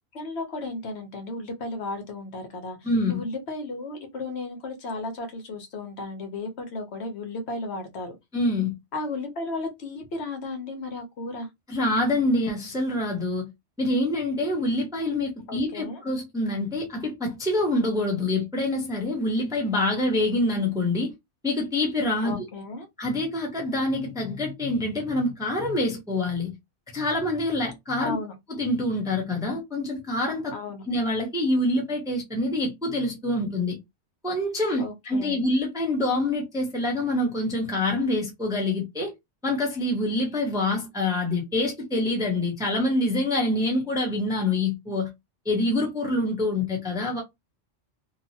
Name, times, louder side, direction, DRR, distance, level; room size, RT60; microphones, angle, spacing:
voice 1, 0.1-8.1 8.9-11.5 15.5-16.0 22.2-22.9 28.0-28.3 30.5-30.8 34.8-35.5, left 2 dB, 65° left, 1.0 m, -34 dB
voice 2, 2.8-3.2 8.3-8.7 11.7-13.5 13.8-21.1 21.4-22.4 23.0-26.5 26.9-28.2 28.6-30.5 30.9-33.8 34.2-39.1 39.4-45.1 45.5-47.2, left 2 dB, 5° right, 0.6 m, -26 dB
2.9 x 2.1 x 2.7 m
omnidirectional pair, 1.2 m